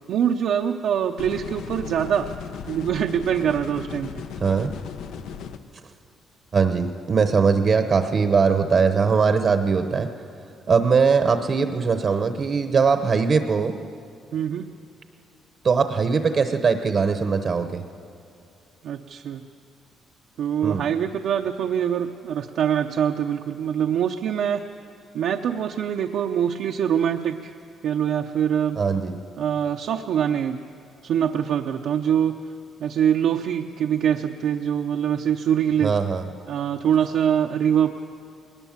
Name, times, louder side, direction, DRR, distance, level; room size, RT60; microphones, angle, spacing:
voice 1, 0.1-2.3 2.7-4.1 14.3-14.7 18.8-19.4 20.4-24.6 25.1-27.5 27.8-28.8 29.4-30.6 31.0-32.4 32.8-35.9 36.5-38.0, right 9 dB, 65° right, 2 dB, 0.7 m, -24 dB
sound 1, 1.2-5.6, left 7 dB, 80° left, 1.0 m, -36 dB
voice 2, 4.4-4.7 6.5-10.1 10.7-13.7 15.6-17.8 20.6-20.8 28.8-29.2 35.8-36.2, right 5 dB, 35° right, 8 dB, 0.9 m, -21 dB
20.5 x 19.0 x 7.3 m, 2.6 s
cardioid pair, 160°, 0 cm